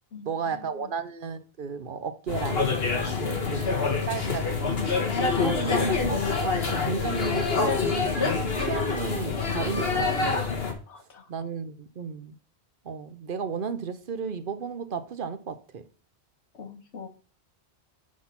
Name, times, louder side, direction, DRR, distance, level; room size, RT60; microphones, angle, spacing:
voice 1, 0.2-2.7 3.2-3.8 4.1-4.9 5.3-8.1 8.6-10.4 11.3-12.3 12.8-15.8, right 6 dB, 55° right, 0.9 m, -34 dB
sound 1, 2.3-10.7, left 4 dB, 65° left, 1.8 m, -26 dB
voice 2, 3.2-3.6 5.6-6.1 10.9-11.3 16.5-17.1, left 6 dB, 90° left, 1.5 m, -41 dB
6.3 x 6.1 x 5.8 m
omnidirectional pair, 1.1 m